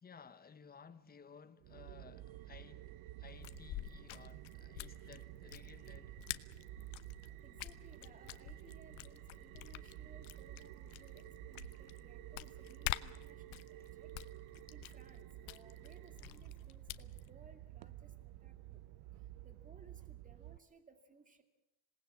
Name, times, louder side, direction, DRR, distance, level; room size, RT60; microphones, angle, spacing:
voice 1, 0.0-6.2 13.8-13.9, left 6 dB, 20° left, 1.0 m, -58 dB
sound 1, 1.6-20.6, right 15 dB, 85° right, 0.9 m, -52 dB
sound 2, 3.2-17.3, left 18 dB, 75° left, 1.0 m, -48 dB
voice 2, 7.4-14.1 14.7-18.8 19.4-21.4, right 4 dB, 15° right, 2.2 m, -63 dB
26.5 x 19.0 x 8.3 m
cardioid pair, 150°, 49 cm